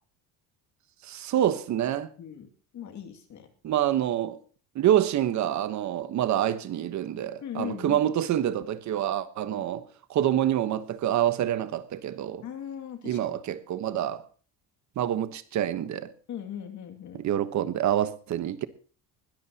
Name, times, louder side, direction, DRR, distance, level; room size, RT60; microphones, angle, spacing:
voice 1, 1.0-2.1 3.6-4.4 4.7-12.4 13.0-14.2 15.0-16.1 17.1-18.7, right 11 dB, 45° right, 1.2 m, -27 dB
voice 2, 2.2-2.5 2.7-3.5 7.4-8.0 9.5-9.7 12.4-13.4 16.3-17.2, left 9 dB, 45° left, 2.5 m, -39 dB
20.5 x 13.0 x 2.9 m
cardioid pair, 155°, 39 cm